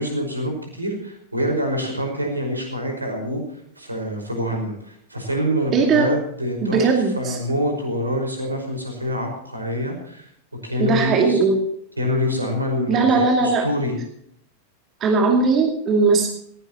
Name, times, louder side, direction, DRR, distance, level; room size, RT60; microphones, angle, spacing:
voice 1, 0.0-10.3 10.6-11.4 12.0-14.0, equal, 85° right, 3 dB, 5.3 m, -26 dB
voice 2, 5.7-6.1 6.6-7.4 10.8-11.6 12.9-13.7 15.0-16.3, right 4 dB, 30° right, 2 dB, 2.5 m, -18 dB
19.5 x 17.0 x 3.0 m, 0.68 s
figure-of-eight pair, 90°, 0 cm